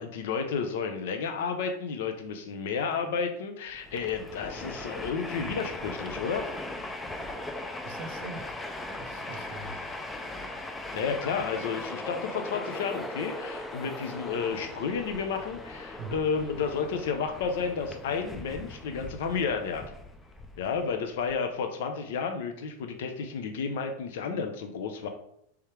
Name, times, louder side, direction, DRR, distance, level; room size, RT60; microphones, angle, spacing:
voice 1, 0.0-6.5 9.5-9.6 10.9-19.8 20.6-25.1, left 5 dB, 70° left, 6 dB, 0.6 m, -31 dB
Train, 3.7-21.3, left 2 dB, 10° left, 0.4 m, -39 dB
voice 2, 7.8-8.6 9.0-9.9 16.0-16.2, right 3 dB, 55° right, 7 dB, 0.6 m, -42 dB
3.5 x 3.3 x 4.5 m, 0.71 s
supercardioid pair, 140°, 0 cm